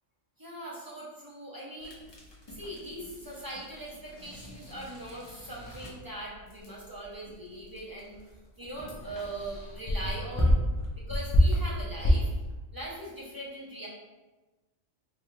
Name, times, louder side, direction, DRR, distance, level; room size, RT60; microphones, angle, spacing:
voice 1, 0.4-2.0 2.5-8.1 8.6-10.6 11.1-12.3 12.7-13.9, right 1 dB, 25° right, -6 dB, 0.5 m, -41 dB
sound 1, 1.8-12.5, equal, 40° left, 0.4 m, -31 dB
sound 2, 4.1-5.9 8.1-8.3 8.7-9.9 10.7-10.9, left 1 dB, 55° left, 0.9 m, -51 dB
4.0 x 2.3 x 3.1 m, 1.2 s
omnidirectional pair, 1.3 m